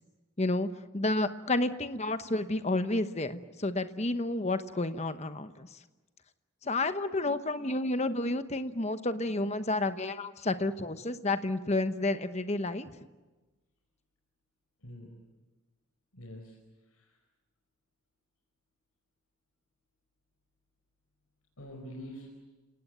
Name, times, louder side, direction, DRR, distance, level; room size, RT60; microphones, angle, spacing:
voice 1, 0.4-0.7 0.9-5.7 6.6-13.0, left 2 dB, 30° left, 10 dB, 1.0 m, -30 dB
voice 2, 16.1-16.6 16.9-17.1 21.6-22.3, equal, 85° left, 0 dB, 4.8 m, -45 dB
29.5 x 18.5 x 9.4 m, 1.2 s
head